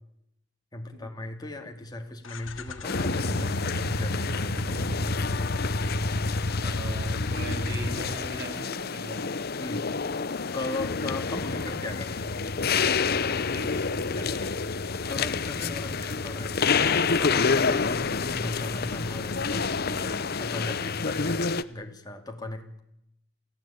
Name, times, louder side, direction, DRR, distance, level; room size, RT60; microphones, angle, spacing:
voice 1, 0.7-4.9 7.5-7.6 9.6-9.8 10.5-12.3 14.1-14.5 15.1-16.7 17.2-22.8, left 2 dB, 20° left, 3 dB, 2.7 m, -38 dB
sound 1, 2.3-8.6 10.4-20.5, left 1 dB, 70° left, 1.6 m, -33 dB
sound 2, 2.8-21.6, left 5 dB, 50° left, 0.8 m, -29 dB
voice 2, 6.6-9.3 13.5-13.9, right 1 dB, 55° right, 3 dB, 7.5 m, -38 dB
28.0 x 16.0 x 8.8 m, 0.83 s
head